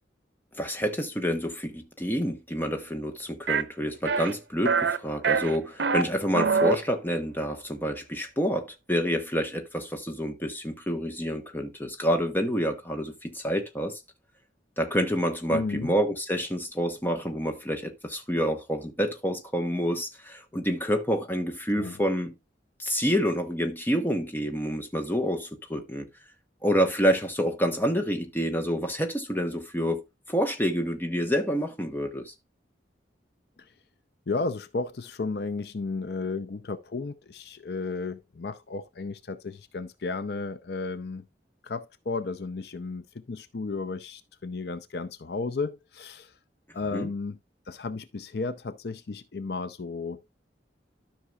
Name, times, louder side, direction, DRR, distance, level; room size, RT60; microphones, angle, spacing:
voice 1, 0.6-14.0 14.8-22.3 22.8-26.1 26.6-30.0 30.3-32.3 46.9-47.1, equal, 10° left, 1.1 m, -28 dB
sound 1, 3.5-3.6 4.1-4.3 4.7-5.0 5.2-6.0 6.3-6.8, right 5 dB, 75° right, 0.7 m, -24 dB
voice 2, 15.5-15.9 21.7-21.9 34.3-41.2 41.6-46.3 46.7-47.4 47.7-50.2, left 3 dB, 60° left, 0.6 m, -33 dB
13.0 x 5.8 x 2.3 m
head